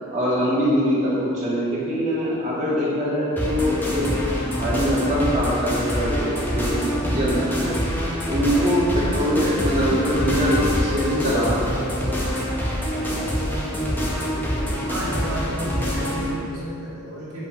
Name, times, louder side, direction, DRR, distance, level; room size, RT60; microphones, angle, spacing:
voice 1, 0.1-12.1, equal, 35° right, -8 dB, 2.6 m, -23 dB
sound 1, 3.4-16.3, equal, 10° left, 1.7 m, -25 dB
voice 2, 14.9-17.5, right 1 dB, 70° right, -7 dB, 2.3 m, -32 dB
9.4 x 5.9 x 6.2 m, 2.6 s
head